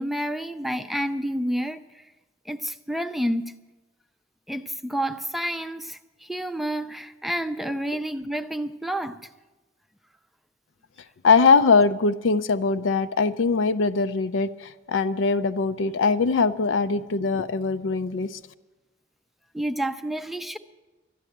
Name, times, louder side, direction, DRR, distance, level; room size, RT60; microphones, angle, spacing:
voice 1, 0.0-1.8 2.5-3.5 4.5-9.2 19.5-20.6, right 1 dB, ahead, 9 dB, 0.4 m, -29 dB
voice 2, 11.2-18.4, left 4 dB, 85° left, 11 dB, 0.5 m, -21 dB
12.5 x 10.0 x 8.6 m, 1.2 s
head